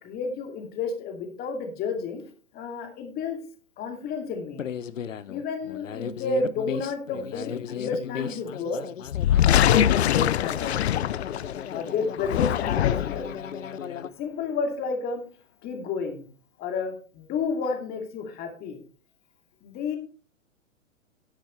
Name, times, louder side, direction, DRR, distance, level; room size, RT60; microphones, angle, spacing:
voice 1, 0.0-2.3 2.5-3.4 3.8-4.7 5.3-8.8 9.5-10.8 11.7-13.3 14.2-15.2 15.6-16.3 16.6-18.8 19.6-20.0, left 4 dB, 25° left, 5 dB, 2.5 m, -31 dB
sound 1, 4.6-14.1, left 8 dB, 70° left, 0.9 m, -36 dB
sound 2, 9.1-11.7 12.1-13.3, left 11 dB, 55° left, 0.6 m, -22 dB
12.5 x 10.5 x 3.2 m, 0.38 s
figure-of-eight pair, 120°, 40 cm